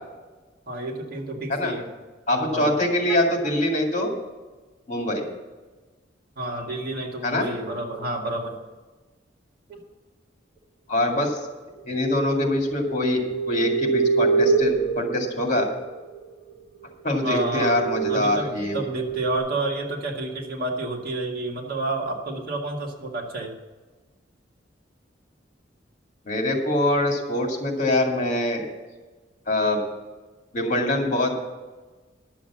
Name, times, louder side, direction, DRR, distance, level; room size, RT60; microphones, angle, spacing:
voice 1, 0.7-1.9 2.3-2.8 6.4-8.5 9.7-9.8 17.2-17.8 18.1-23.5, right 2 dB, 55° right, 0 dB, 1.9 m, -30 dB
voice 2, 2.3-4.1 4.9-5.3 7.2-7.5 10.9-11.4 11.8-15.7 17.0-18.8 26.3-28.7 29.5-29.8 30.5-31.4, left 1 dB, 40° left, 1 dB, 2.2 m, -24 dB
sound 1, 12.6-16.2 16.8-16.9 17.3-19.4, right 4 dB, 35° right, 4.0 m, -26 dB
11.5 x 7.3 x 7.1 m, 1.3 s
head